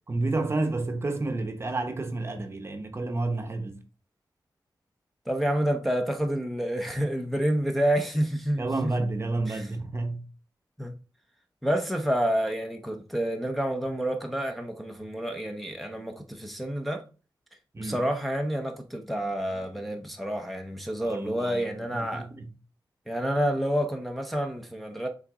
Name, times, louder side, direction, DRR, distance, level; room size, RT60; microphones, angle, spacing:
voice 1, 0.1-3.8 8.6-10.2 17.7-18.0 21.0-22.5, right 2 dB, 35° right, 0.9 m, -30 dB
voice 2, 5.3-8.9 9.5-9.6 10.8-10.9 11.6-17.0 17.8-22.3 23.1-25.1, equal, ahead, 0.8 m, -29 dB
6.4 x 4.1 x 3.6 m
wide cardioid pair, 125°, 8 cm